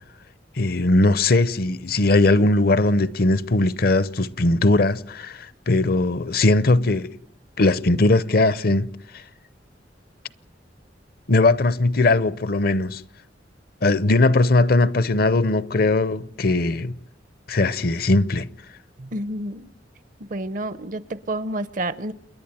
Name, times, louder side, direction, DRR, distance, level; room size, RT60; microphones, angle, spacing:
voice 1, 0.6-7.1 7.6-8.9 11.3-13.0 13.8-17.0 17.5-18.5, left 2 dB, 55° left, 0.7 m, -19 dB
voice 2, 19.0-19.7 20.3-22.1, right 1 dB, 45° right, 0.8 m, -29 dB
28.5 x 11.0 x 9.0 m
head